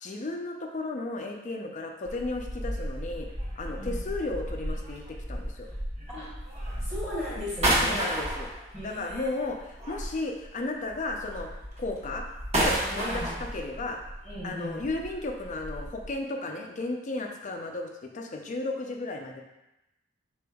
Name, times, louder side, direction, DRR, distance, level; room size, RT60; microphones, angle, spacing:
voice 1, 0.0-3.3 3.6-5.7 7.8-8.5 8.8-11.5 11.8-12.3 12.5-14.0 14.4-19.4, left 2 dB, 40° left, 3 dB, 0.5 m, -34 dB
sound 1, 2.1-10.5 10.9-16.1, right 1 dB, 35° right, 0.9 m, -33 dB
voice 2, 6.8-8.1 8.7-9.3 12.8-13.4 14.2-14.9, left 1 dB, ahead, -7 dB, 1.0 m, -37 dB
5.1 x 4.2 x 2.3 m, 0.96 s
head